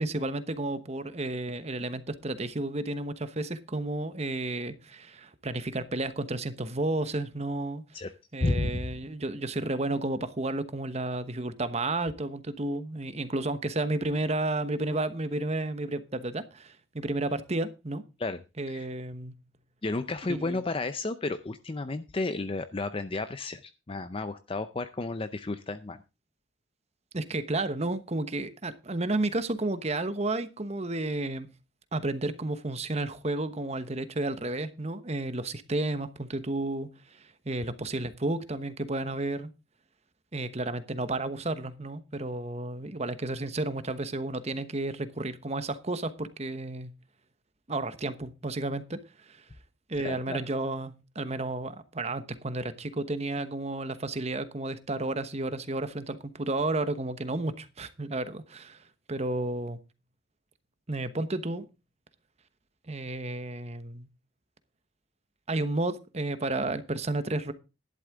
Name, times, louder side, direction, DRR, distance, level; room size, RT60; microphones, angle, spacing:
voice 1, 0.0-7.8 8.3-18.0 18.6-19.3 20.3-20.6 27.1-31.5 31.9-39.5 40.3-46.9 47.7-49.0 49.3-49.4 49.9-58.8 59.1-59.8 60.9-61.6 62.9-64.1 65.5-67.5, right 2 dB, 35° right, 12 dB, 1.1 m, -32 dB
voice 2, 8.4-8.9 18.2-18.4 18.7-18.9 19.8-26.0 50.0-50.4, left 2 dB, 30° left, 11 dB, 0.5 m, -32 dB
11.5 x 11.5 x 3.6 m, 0.28 s
head